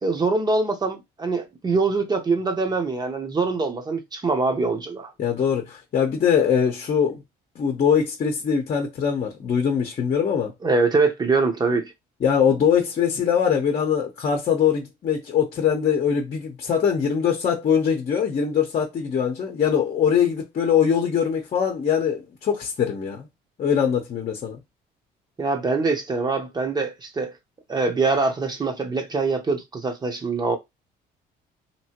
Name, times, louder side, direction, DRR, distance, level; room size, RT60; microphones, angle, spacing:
voice 1, 0.0-5.1 10.6-11.9 25.4-27.3 27.7-30.6, right 3 dB, 25° right, 0.8 m, -23 dB
voice 2, 5.2-7.2 7.6-10.5 12.2-23.3 23.6-24.6, left 7 dB, 45° left, 0.8 m, -22 dB
2.9 x 2.7 x 2.9 m
cardioid pair, 110°, 17 cm